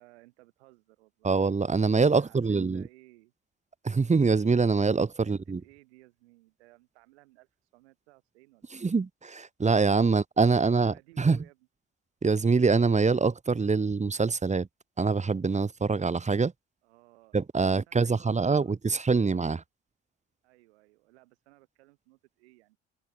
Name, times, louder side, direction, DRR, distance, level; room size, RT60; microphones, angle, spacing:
voice 1, 0.0-1.3 2.0-3.3 5.2-8.8 10.5-11.6 16.8-18.7 20.4-22.8, right 20 dB, 85° right, 7.8 m, -58 dB
voice 2, 1.2-2.8 3.8-5.6 8.8-11.4 12.2-14.7 15.0-16.5 17.3-19.6, right 4 dB, 20° right, 1.3 m, -24 dB
hypercardioid pair, 55°, 32 cm